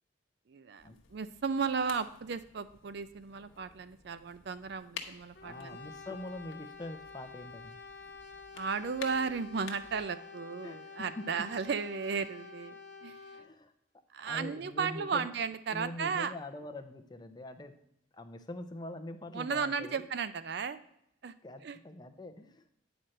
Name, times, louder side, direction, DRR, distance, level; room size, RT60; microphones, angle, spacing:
voice 1, 0.5-5.8 8.5-13.2 14.1-16.3 19.3-20.8 21.2-21.3 21.6-21.8, right 5 dB, 55° right, 13 dB, 0.4 m, -35 dB
sound 1, 0.8-10.1, left 6 dB, 80° left, 0.9 m, -52 dB
Brass instrument, 5.3-13.5, left 4 dB, 60° left, 0.7 m, -49 dB
voice 2, 5.4-7.8 10.6-11.2 13.3-15.3 15.7-17.8 18.1-20.1 21.4-22.7, left 1 dB, 20° left, 6 dB, 0.6 m, -44 dB
9.1 x 4.3 x 6.4 m, 0.78 s
head